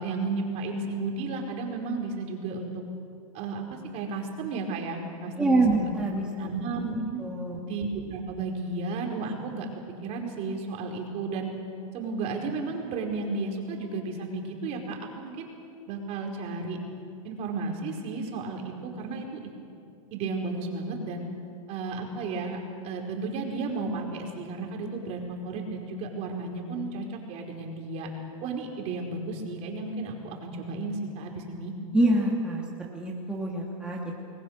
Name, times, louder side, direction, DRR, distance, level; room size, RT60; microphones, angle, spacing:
voice 1, 0.0-2.8 3.3-5.9 6.4-7.2 7.6-9.7 10.0-11.5 11.9-15.5 15.9-16.8 17.2-19.5 20.1-21.2 21.7-22.6 22.8-28.1 28.4-31.7, right 3 dB, 40° right, 2 dB, 4.8 m, -33 dB
voice 2, 5.4-6.5 7.2-7.6 31.9-34.1, right 2 dB, 5° right, -3 dB, 2.6 m, -26 dB
29.5 x 21.5 x 6.7 m, 2.5 s
hypercardioid pair, 135°, 17 cm